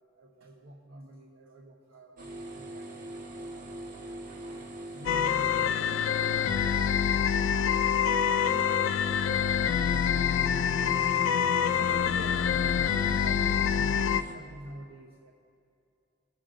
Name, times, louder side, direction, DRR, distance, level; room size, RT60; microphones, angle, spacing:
voice 1, 0.1-3.8 4.4-4.6 4.9-6.9 7.6-7.7 8.5-9.4 11.6-12.6 12.9-15.3, right 1 dB, 85° right, -1 dB, 0.9 m, -48 dB
sound 1, 2.2-14.3, right 1 dB, 40° right, 0.9 m, -41 dB
sound 2, 5.1-14.2, left 8 dB, 70° left, 0.3 m, -26 dB
20.5 x 7.5 x 2.5 m, 2.4 s
head